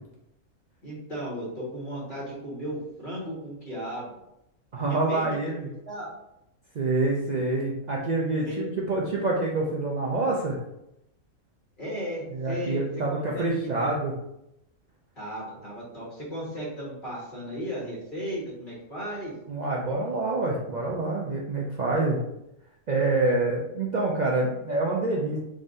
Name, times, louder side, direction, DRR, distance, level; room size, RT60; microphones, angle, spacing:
voice 1, 0.8-4.1 4.9-5.6 5.8-6.1 8.4-8.7 11.8-12.8 13.1-13.5 13.8-13.9 15.2-19.3, equal, 35° left, -6 dB, 1.5 m, -35 dB
voice 2, 4.7-5.7 6.7-10.6 12.3-14.1 19.5-22.2 22.9-25.4, right 2 dB, 80° right, -3 dB, 0.4 m, -26 dB
3.9 x 3.6 x 2.5 m, 0.84 s
omnidirectional pair, 1.5 m